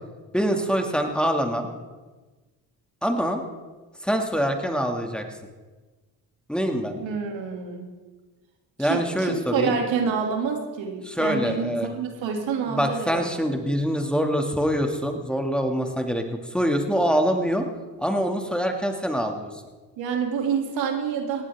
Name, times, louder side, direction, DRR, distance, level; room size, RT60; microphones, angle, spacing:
voice 1, 0.3-1.7 3.0-3.4 4.0-5.2 6.5-7.0 8.8-9.8 11.0-11.9 12.6-16.2 16.5-17.6 18.0-19.5, equal, ahead, 3 dB, 2.2 m, -24 dB
voice 2, 7.0-7.8 8.8-13.3 20.0-21.4, right 6 dB, 75° right, 2 dB, 2.7 m, -27 dB
19.0 x 16.0 x 3.6 m, 1.3 s
supercardioid pair, 55°, 45 cm